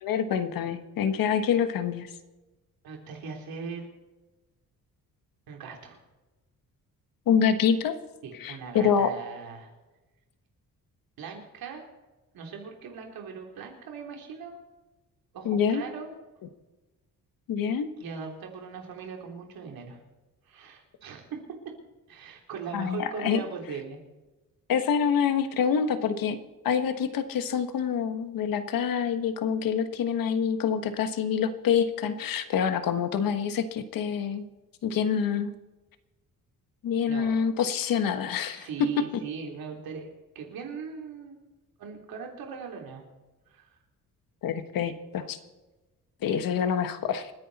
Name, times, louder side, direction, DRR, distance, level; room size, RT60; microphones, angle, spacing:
voice 1, 0.0-2.1 7.3-8.0 8.4-9.1 15.4-15.8 17.5-17.9 22.7-23.4 24.7-26.4 26.6-34.5 34.8-35.5 36.8-38.7 44.4-45.4 46.2-47.3, left 7 dB, 75° left, 9 dB, 1.4 m, -26 dB
voice 2, 2.8-3.9 5.5-6.0 8.2-9.7 11.2-11.8 12.3-14.6 15.3-16.1 18.0-20.0 20.5-21.4 22.1-24.0 37.1-37.9 38.5-40.1 40.4-41.4 41.8-43.0 43.5-43.7, right 6 dB, 85° right, 1 dB, 3.6 m, -39 dB
28.0 x 10.0 x 4.2 m, 1.1 s
wide cardioid pair, 170°, 34 cm